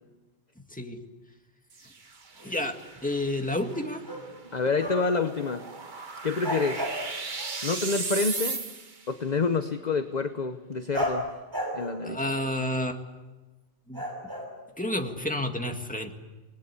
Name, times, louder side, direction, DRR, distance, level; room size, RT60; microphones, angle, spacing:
sound 1, 1.7-9.1, right 4 dB, 40° right, 1.4 m, -37 dB
voice 1, 2.4-2.8 3.0-4.0 12.0-13.0 13.9-14.0 14.8-16.2, left 1 dB, 5° left, 4 dB, 2.0 m, -30 dB
sound 2, 2.4-2.5 3.6-4.4 4.8-5.3 5.6-5.7 6.4-7.6 10.9-13.0 13.9-15.1, equal, 15° right, 5.9 m, -34 dB
voice 2, 4.5-5.6 6.2-6.9 7.6-8.6 9.1-11.2 11.7-12.2, left 4 dB, 40° left, 8 dB, 1.0 m, -27 dB
29.0 x 20.0 x 8.4 m, 1.2 s
omnidirectional pair, 1.3 m